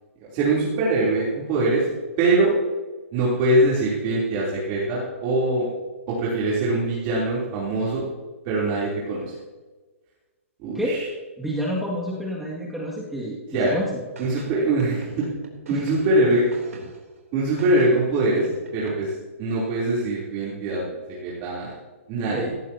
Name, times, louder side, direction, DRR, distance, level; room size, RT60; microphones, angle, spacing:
voice 1, 0.2-1.9 2.2-2.5 3.1-5.7 6.1-8.1 8.4-9.3 10.6-11.1 13.5-13.8 14.2-15.3 15.7-16.5 17.3-20.8 21.1-21.7 22.1-22.5, right 2 dB, 35° right, -7 dB, 3.5 m, -23 dB
voice 2, 11.4-14.0 15.7-15.8 22.3-22.5, equal, ahead, -6 dB, 2.2 m, -29 dB
sound 1, 14.2-17.2 17.6-18.9, right 4 dB, 90° right, 3.5 m, -43 dB
18.0 x 15.0 x 2.9 m, 1.3 s
hypercardioid pair, 150°, 8 cm